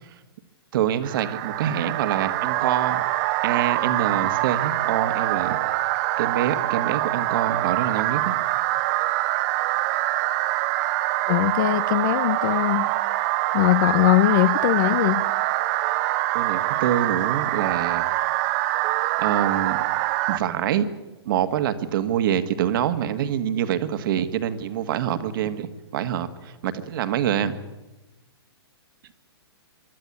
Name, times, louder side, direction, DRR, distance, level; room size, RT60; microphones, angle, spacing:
voice 1, 0.7-3.0 3.4-5.6 6.2-8.4 16.3-18.2 19.2-19.8 20.3-20.9 21.2-27.6, right 10 dB, 55° right, 10 dB, 1.7 m, -25 dB
sound 1, 1.0-20.4, right 16 dB, 40° right, 1.2 m, -24 dB
voice 2, 11.3-12.9 13.5-15.2, left 16 dB, 45° left, 19 dB, 0.9 m, -21 dB
24.5 x 12.0 x 9.6 m, 1.1 s
hypercardioid pair, 145°, 14 cm